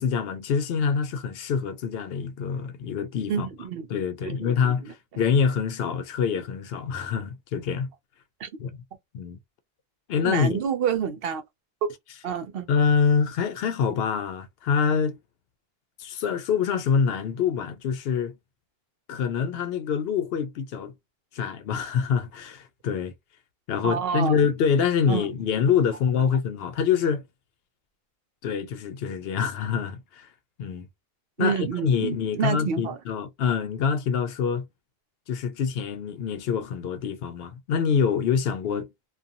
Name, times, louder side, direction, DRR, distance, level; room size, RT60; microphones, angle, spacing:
voice 1, 0.0-3.5 3.9-7.9 8.6-8.7 9.1-9.4 10.1-10.6 12.7-15.2 16.0-18.3 19.1-20.9 21.3-23.1 23.7-27.2 28.4-30.3 30.6-30.9 31.4-34.7 35.3-38.9, left 6 dB, 75° left, 0.8 m, -25 dB
voice 2, 3.3-3.9 4.2-4.9 8.4-8.5 10.2-11.4 11.8-11.9 12.2-12.7 23.8-24.5 25.1-25.3 31.4-33.0, right 7 dB, 70° right, 0.8 m, -28 dB
2.5 x 2.3 x 2.6 m
omnidirectional pair, 1.0 m